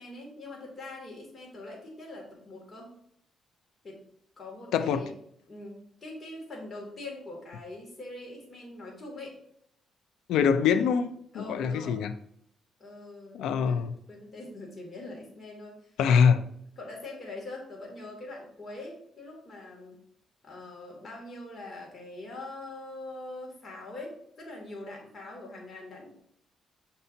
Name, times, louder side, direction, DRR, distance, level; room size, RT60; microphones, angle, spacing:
voice 1, 0.0-2.9 3.8-4.0 4.4-5.1 5.5-9.4 11.3-12.0 12.8-15.9 16.8-20.0 20.4-26.1, left 2 dB, 35° left, 2.5 m, -43 dB
voice 2, 4.7-5.0 10.3-12.1 13.3-13.9 16.0-16.4, left 7 dB, 85° left, 0.5 m, -24 dB
6.7 x 5.4 x 2.8 m
cardioid pair, 90°, 0 cm